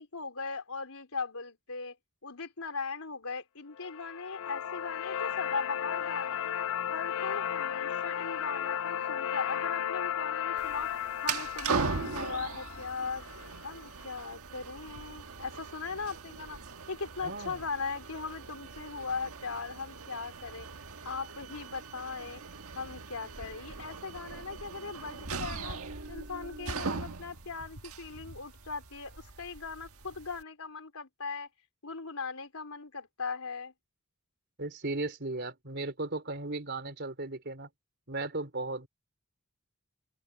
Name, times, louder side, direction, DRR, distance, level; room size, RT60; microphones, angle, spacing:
voice 1, 0.0-2.0 2.2-6.5 6.9-10.9 11.2-13.2 13.6-16.6 16.9-20.7 21.0-22.4 22.7-25.8 26.1-31.5 31.8-33.7, left 4 dB, 90° left, 3.9 m, -39 dB
sound 1, 3.8-13.8, left 9 dB, 70° left, 0.4 m, -35 dB
sound 2, 10.6-30.4, right 4 dB, 90° right, 1.5 m, -40 dB
voice 2, 17.2-17.6 34.6-37.7 38.1-38.9, right 2 dB, 50° right, 3.8 m, -36 dB
open air
head